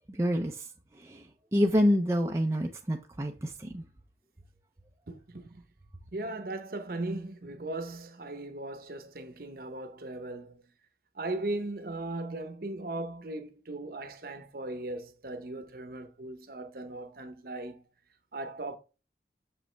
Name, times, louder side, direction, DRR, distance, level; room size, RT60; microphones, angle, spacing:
voice 1, 0.1-0.6 1.0-1.2 1.5-3.8, equal, 15° right, 0.5 m, -27 dB
voice 2, 5.1-5.6 6.1-10.6 11.1-17.8 18.3-18.8, right 2 dB, 55° right, 0.9 m, -38 dB
6.7 x 5.2 x 3.3 m
head